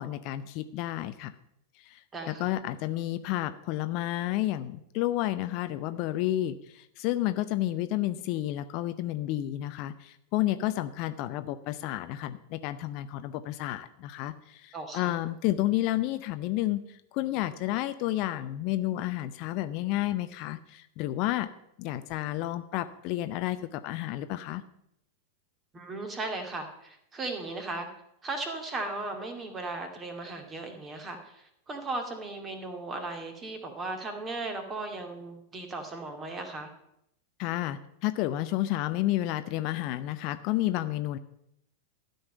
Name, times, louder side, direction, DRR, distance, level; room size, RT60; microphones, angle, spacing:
voice 1, 0.0-1.3 1.8-21.5 21.8-24.6 37.4-41.2, left 15 dB, 45° left, 11 dB, 0.6 m, -31 dB
voice 2, 2.1-2.5 14.7-15.1 25.7-27.9 28.2-36.7, right 2 dB, 20° right, 5 dB, 2.3 m, -37 dB
13.0 x 5.6 x 9.1 m, 0.78 s
figure-of-eight pair, 90°, 0 cm